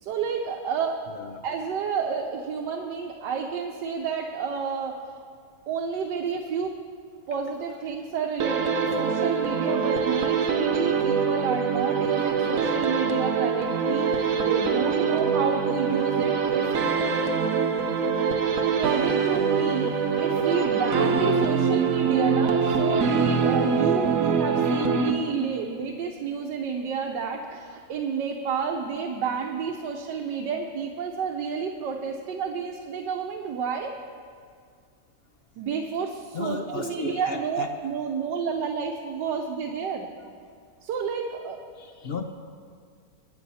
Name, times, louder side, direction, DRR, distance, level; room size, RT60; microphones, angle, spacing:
voice 1, 0.0-1.0 1.4-5.2 5.7-6.8 7.3-16.7 18.7-33.9 35.6-40.1 40.8-41.6, right 6 dB, 90° right, 1 dB, 1.5 m, -30 dB
sound 1, 8.4-25.6, right 5 dB, 55° right, 1.2 m, -24 dB
voice 2, 36.3-37.7 41.8-42.2, left 4 dB, 60° left, 5 dB, 0.6 m, -34 dB
22.5 x 9.1 x 4.2 m, 2.1 s
omnidirectional pair, 1.8 m